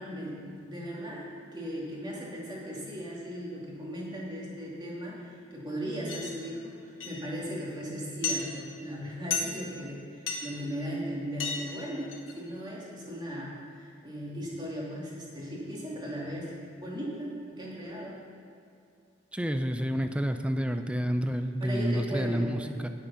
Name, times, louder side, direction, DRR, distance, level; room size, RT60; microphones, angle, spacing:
voice 1, 0.0-18.2 21.6-22.6, equal, 20° right, -5 dB, 2.5 m, -37 dB
sound 1, 6.1-6.3 7.0-7.2 8.2-8.4 9.3-9.6 10.3-10.4 11.4-11.6 11.9-12.3, left 5 dB, 90° left, 1.7 m, -32 dB
voice 2, 19.3-22.9, equal, 5° right, 8 dB, 0.5 m, -29 dB
9.9 x 8.8 x 5.7 m, 2.6 s
head